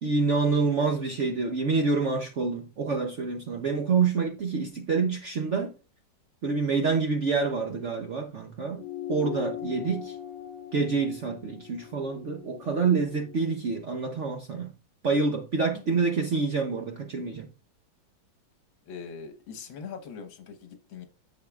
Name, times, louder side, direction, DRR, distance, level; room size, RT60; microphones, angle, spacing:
voice 1, 0.0-5.7 6.4-8.8 9.1-10.2 10.7-14.7 15.0-17.5, right 4 dB, 60° right, 0.8 m, -27 dB
sound 1, 8.8-13.6, left 10 dB, 60° left, 3.1 m, -40 dB
voice 2, 18.9-21.0, left 6 dB, 80° left, 1.9 m, -42 dB
9.3 x 7.0 x 2.3 m
omnidirectional pair, 2.1 m